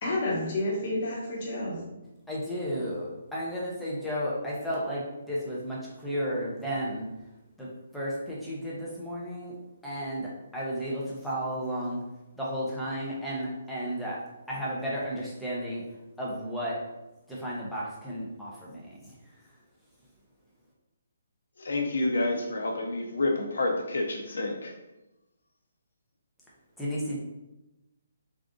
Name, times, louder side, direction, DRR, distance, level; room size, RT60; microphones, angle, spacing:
voice 1, 0.0-1.8, left 1 dB, 30° left, -4 dB, 1.1 m, -30 dB
voice 2, 2.3-7.1 7.6-7.7 7.9-9.5 9.8-12.0 12.4-14.2 14.5-15.8 16.2-16.8 17.3-19.1 26.8-27.2, equal, ahead, -7 dB, 0.6 m, -33 dB
voice 3, 21.6-24.7, left 2 dB, 70° left, 1 dB, 0.8 m, -29 dB
3.6 x 2.5 x 3.7 m, 0.97 s
hypercardioid pair, 175°, 0 cm